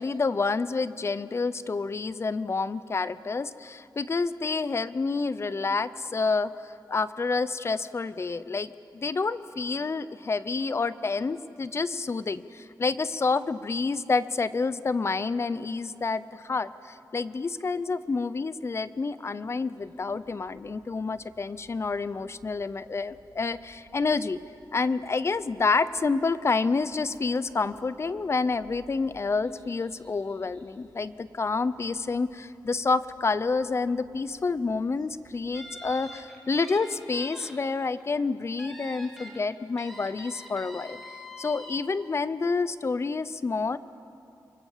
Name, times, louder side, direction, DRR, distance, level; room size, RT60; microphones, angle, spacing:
voice 1, 0.0-24.4 24.7-43.8, left 4 dB, 35° left, 15 dB, 0.6 m, -28 dB
sound 1, 19.8-36.2, right 2 dB, 65° right, 5.1 m, -61 dB
sound 2, 35.5-37.5 37.9-38.0 38.6-39.4 39.8-41.8, equal, 5° left, 3.3 m, -44 dB
27.5 x 23.5 x 7.3 m, 2.7 s
wide cardioid pair, 170°, 8 cm